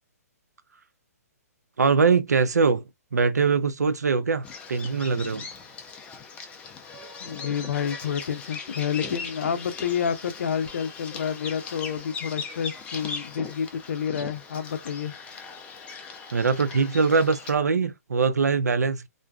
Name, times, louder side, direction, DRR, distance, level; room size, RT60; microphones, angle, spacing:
voice 1, 1.8-5.5 16.3-19.1, right 5 dB, 90° right, 0.4 m, -22 dB
Bird vocalization bird call bird song, 4.4-17.6, left 5 dB, 15° left, 0.4 m, -39 dB
voice 2, 7.2-15.1, left 7 dB, 65° left, 0.5 m, -29 dB
2.5 x 2.2 x 2.2 m
hypercardioid pair, 140°, 9 cm